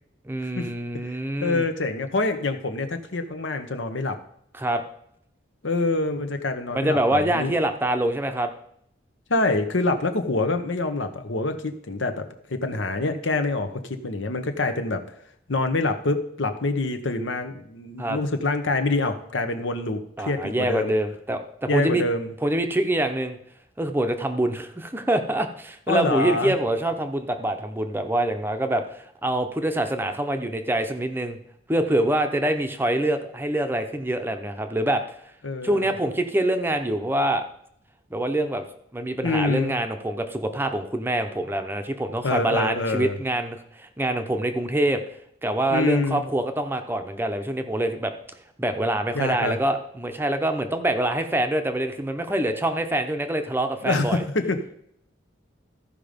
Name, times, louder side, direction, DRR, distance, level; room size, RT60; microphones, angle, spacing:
voice 1, 0.3-1.7 4.5-4.8 6.7-8.5 18.0-18.2 20.2-22.0 22.4-23.4 23.8-31.4 31.7-35.0 35.6-37.4 38.1-38.7 38.9-45.0 45.4-48.1 48.6-54.2, right 1 dB, 10° right, 6 dB, 0.7 m, -25 dB
voice 2, 1.4-4.2 5.6-7.6 9.3-15.0 15.5-20.9 21.7-22.3 25.9-26.5 35.4-35.9 39.2-39.8 42.2-43.2 45.7-46.3 49.1-49.6 53.8-54.7, left 2 dB, 75° left, 7 dB, 1.0 m, -26 dB
14.0 x 5.2 x 5.1 m, 0.71 s
head